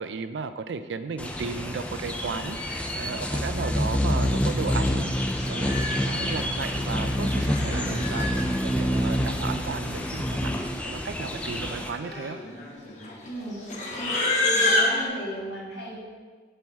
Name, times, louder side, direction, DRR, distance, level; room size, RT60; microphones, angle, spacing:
voice 1, 0.0-5.1 5.5-5.8 6.1-10.6 10.8-12.4, right 5 dB, 85° right, 11 dB, 0.4 m, -34 dB
sound 1, 1.2-11.9, equal, 5° left, 0.4 m, -27 dB
Livestock farm animals working animals, 4.8-5.0 5.4-6.3 7.2-8.5 9.5-9.6 9.8-10.3 10.6-10.8 11.5-15.1, left 2 dB, 45° left, 0.9 m, -28 dB
voice 2, 7.7-8.0 13.2-13.6 14.0-14.1 14.4-16.0, right 1 dB, 80° left, -6 dB, 2.2 m, -36 dB
7.4 x 5.6 x 3.5 m, 1.4 s
head